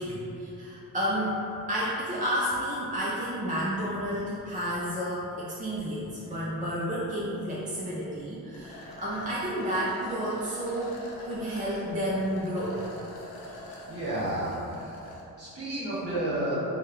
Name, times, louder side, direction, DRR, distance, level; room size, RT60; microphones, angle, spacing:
voice 1, 0.0-11.0 11.2-12.8 13.1-13.5, equal, 25° right, -7 dB, 0.4 m, -31 dB
sound 1, 8.5-15.2, left 1 dB, 75° left, 0.6 m, -45 dB
voice 2, 13.8-14.9 15.4-16.6, right 1 dB, 40° right, -9 dB, 1.4 m, -31 dB
3.3 x 2.2 x 3.1 m, 2.7 s
cardioid pair, 90°, 36 cm